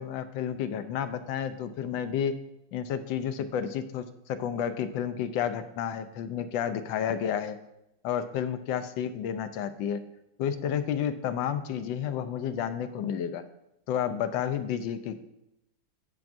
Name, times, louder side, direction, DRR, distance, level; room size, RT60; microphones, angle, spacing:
voice 1, 0.0-2.4 2.7-7.6 8.0-10.0 10.4-13.4 13.9-15.2, left 8 dB, 75° left, 10 dB, 1.3 m, -31 dB
10.5 x 7.1 x 2.6 m, 0.83 s
omnidirectional pair, 2.2 m